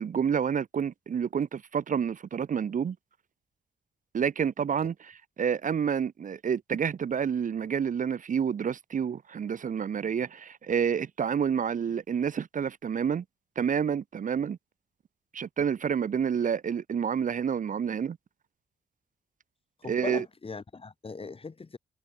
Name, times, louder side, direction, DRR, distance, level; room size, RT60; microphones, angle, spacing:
voice 1, 0.0-3.0 4.1-13.2 13.6-14.6 15.3-18.2 19.9-20.2, right 7 dB, 50° right, 1.0 m, -29 dB
voice 2, 19.8-21.8, left 4 dB, 35° left, 3.2 m, -39 dB
cardioid pair, 65°, 17 cm